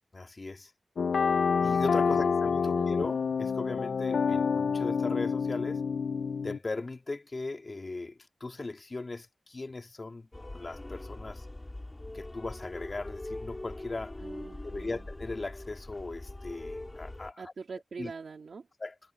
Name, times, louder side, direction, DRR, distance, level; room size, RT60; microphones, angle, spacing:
voice 1, 0.1-0.7 1.6-5.8 6.4-10.3 10.5-11.5 12.1-14.1 14.6-17.5 18.0-18.1 18.8-19.0, left 3 dB, 40° left, 2.5 m, -38 dB
sound 1, 1.0-6.6, left 5 dB, 90° left, 0.4 m, -28 dB
voice 2, 2.6-2.9 14.2-15.0 17.4-18.7, right 5 dB, 75° right, 2.9 m, -43 dB
sound 2, 10.3-17.3, left 2 dB, 25° left, 5.3 m, -42 dB
wide cardioid pair, 80°, 0 cm